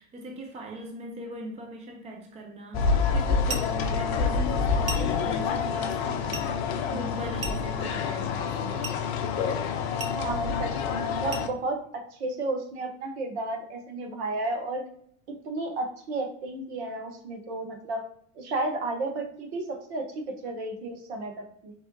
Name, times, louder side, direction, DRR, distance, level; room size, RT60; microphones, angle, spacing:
voice 1, 0.0-8.9, equal, 15° right, 0.6 m, -40 dB
sound 1, 2.7-11.5, left 5 dB, 50° left, 0.6 m, -27 dB
sound 2, 3.5-3.8 4.9-5.2 6.3-6.5 7.4-7.8 8.8-9.1 10.0-10.3 11.3-11.6, right 3 dB, 80° right, 0.8 m, -36 dB
voice 2, 10.2-14.8 15.4-18.0 18.4-21.7, right 2 dB, 55° right, 1.0 m, -33 dB
4.4 x 3.5 x 2.6 m
figure-of-eight pair, 80°, 40 cm